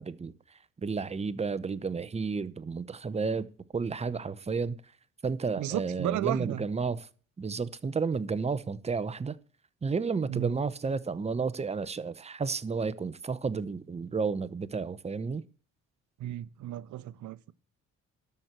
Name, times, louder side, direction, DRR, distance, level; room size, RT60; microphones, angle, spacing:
voice 1, 0.0-3.5 3.7-4.7 5.2-7.1 7.4-9.4 9.8-15.4, right 5 dB, 20° right, 0.8 m, -32 dB
voice 2, 5.6-6.7 10.3-10.5 16.2-17.5, right 14 dB, 75° right, 0.7 m, -34 dB
12.5 x 4.5 x 8.2 m
cardioid pair, 90°, 30 cm